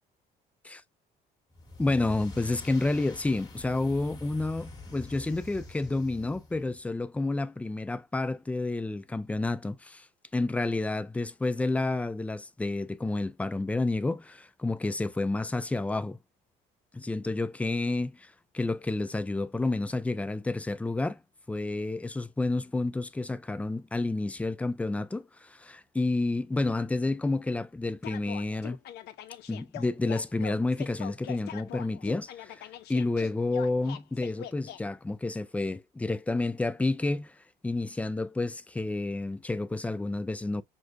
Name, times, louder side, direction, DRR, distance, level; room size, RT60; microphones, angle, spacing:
sound 1, 1.5-6.8, left 2 dB, 25° left, 1.2 m, -45 dB
voice 1, 1.8-10.1 10.3-16.2 16.9-21.2 21.5-28.8 29.5-32.6 32.9-37.3 37.6-40.6, left 2 dB, 10° left, 0.3 m, -30 dB
sound 2, 28.0-34.8, left 11 dB, 75° left, 0.6 m, -42 dB
6.2 x 2.1 x 2.5 m
cardioid pair, 110°, 17 cm